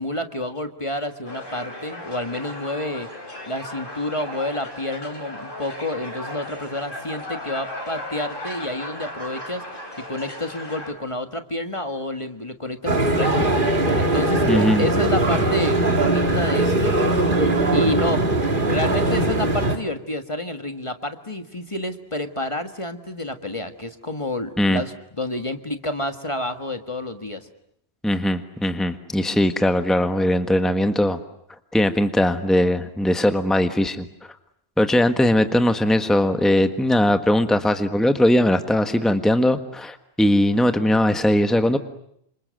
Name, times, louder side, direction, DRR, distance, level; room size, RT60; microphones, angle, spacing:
voice 1, 0.0-3.1 3.5-9.6 10.0-17.0 17.7-18.3 18.6-27.5, left 1 dB, 30° left, 7 dB, 1.7 m, -29 dB
sound 1, 1.2-10.9, left 1 dB, 55° left, 5.2 m, -36 dB
sound 2, 12.9-19.8, right 2 dB, 50° right, 2.6 m, -20 dB
voice 2, 14.5-14.8 24.6-24.8 28.0-31.2 31.7-34.0 34.8-41.8, left 1 dB, ahead, 8 dB, 1.4 m, -20 dB
29.0 x 27.0 x 7.7 m, 0.72 s
omnidirectional pair, 1.1 m